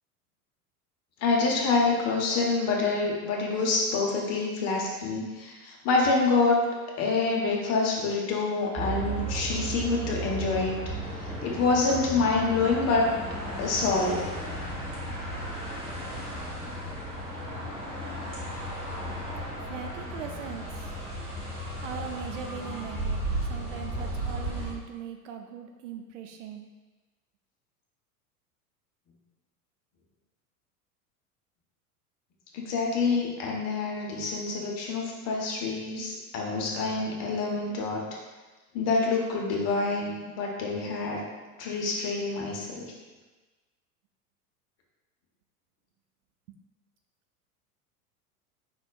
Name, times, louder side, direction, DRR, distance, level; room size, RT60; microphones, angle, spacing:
voice 1, 1.2-6.6 7.0-10.8 11.4-13.1 13.6-14.3 32.5-38.0 38.7-41.3 41.6-42.9, left 3 dB, 35° left, -1 dB, 0.9 m, -26 dB
sound 1, 8.7-24.7, right 1 dB, 10° right, 1.2 m, -34 dB
voice 2, 19.6-20.9 21.8-23.2 23.5-26.7, right 7 dB, 55° right, 5 dB, 0.5 m, -40 dB
4.8 x 4.1 x 2.3 m, 1.2 s
figure-of-eight pair, 85°, 46 cm